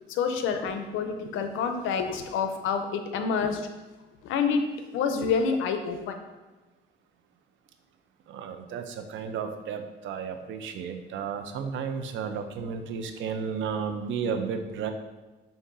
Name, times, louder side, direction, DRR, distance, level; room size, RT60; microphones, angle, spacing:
voice 1, 0.1-3.6 4.2-4.6 4.9-6.2, left 6 dB, 90° left, 7 dB, 0.4 m, -27 dB
voice 2, 8.3-14.9, right 6 dB, 75° right, 7 dB, 0.4 m, -33 dB
5.3 x 2.5 x 2.5 m, 1.2 s
cardioid pair, 90°, 20 cm